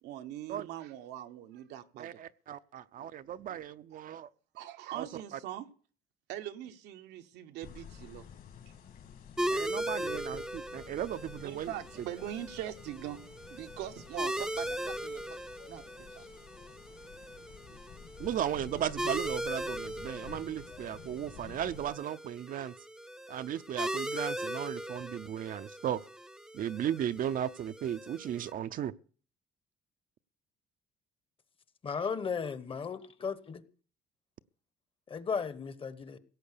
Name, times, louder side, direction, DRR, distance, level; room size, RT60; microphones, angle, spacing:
voice 1, 0.0-2.2 2.5-2.6 3.9-4.0 4.5-5.7 6.3-8.3 11.4-13.2 13.5-15.4 15.7-15.8 16.2-16.3, right 12 dB, 85° right, 1.1 m, -42 dB
voice 2, 2.0-4.3 4.9-5.1 5.3-5.4 9.5-11.7 18.2-22.7 23.3-26.1 26.5-28.9, right 10 dB, 55° right, 0.6 m, -36 dB
sound 1, 7.6-21.9, left 7 dB, 60° left, 2.4 m, -51 dB
sound 2, 9.4-28.5, equal, 5° right, 0.7 m, -39 dB
voice 3, 31.8-33.3 35.1-36.2, left 6 dB, 30° left, 1.1 m, -35 dB
17.0 x 7.8 x 6.8 m
cardioid pair, 110°, 17 cm